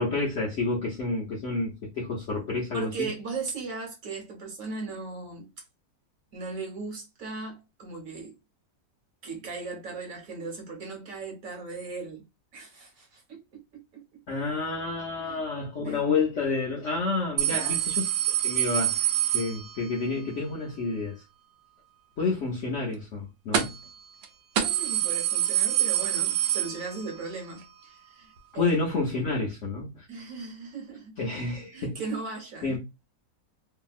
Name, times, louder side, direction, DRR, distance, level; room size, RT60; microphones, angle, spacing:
voice 1, 0.0-3.1 14.3-21.2 22.2-23.7 28.5-30.1 31.2-32.0 32.6-32.8, left 3 dB, 65° left, 0.7 m, -29 dB
voice 2, 2.7-5.5 6.3-8.3 9.2-12.2 12.5-14.0 15.1-15.4 15.8-16.0 17.5-17.9 24.6-28.7 30.1-31.2 31.7-32.8, right 4 dB, 55° right, 1.2 m, -37 dB
sound 1, 17.4-20.1 23.5-23.9 24.2-24.3 24.6-27.3 27.6-27.7 28.7-28.8, right 12 dB, 80° right, 1.2 m, -26 dB
2.7 x 2.7 x 2.3 m
omnidirectional pair, 1.9 m